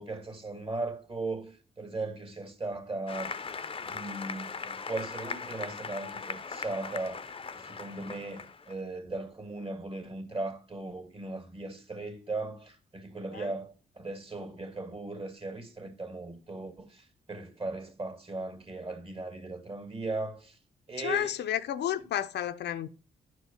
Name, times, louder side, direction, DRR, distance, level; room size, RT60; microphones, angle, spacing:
voice 1, 0.0-3.3 3.8-20.6 20.9-21.4, right 2 dB, 30° right, 2.5 m, -38 dB
Applause, 3.1-8.7, left 5 dB, 30° left, 0.7 m, -39 dB
voice 2, 21.0-22.9, left 10 dB, 75° left, 0.6 m, -31 dB
10.5 x 4.5 x 5.6 m
cardioid pair, 80°, 18 cm